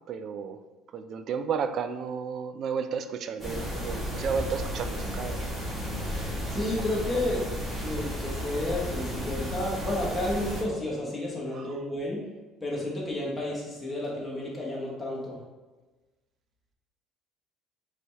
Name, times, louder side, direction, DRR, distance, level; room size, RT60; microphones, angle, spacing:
voice 1, 0.1-0.6 0.9-5.5 7.1-7.3 11.5-11.7, right 6 dB, 50° right, 9 dB, 0.3 m, -33 dB
sound 1, 3.4-10.6, equal, 20° right, 1.4 m, -33 dB
voice 2, 6.5-7.4 7.8-12.2 12.6-15.4, left 1 dB, 10° left, -5 dB, 1.3 m, -31 dB
4.0 x 3.3 x 3.4 m, 1.2 s
cardioid pair, 105°, 0 cm